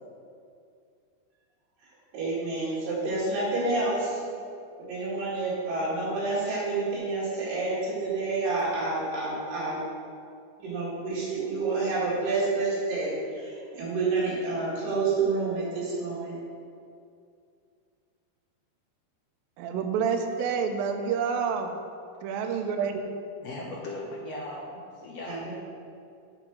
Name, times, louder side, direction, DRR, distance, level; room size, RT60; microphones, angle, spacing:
voice 1, 2.1-4.2 4.9-9.8 10.6-16.4 25.3-25.6, right 3 dB, 65° right, -7 dB, 3.5 m, -29 dB
voice 2, 19.6-21.7 22.2-23.0, right 6 dB, 80° right, 4 dB, 2.2 m, -28 dB
voice 3, 23.4-24.7 25.0-25.5, left 1 dB, 80° left, -5 dB, 1.5 m, -38 dB
8.6 x 5.0 x 6.0 m, 2.4 s
omnidirectional pair, 4.4 m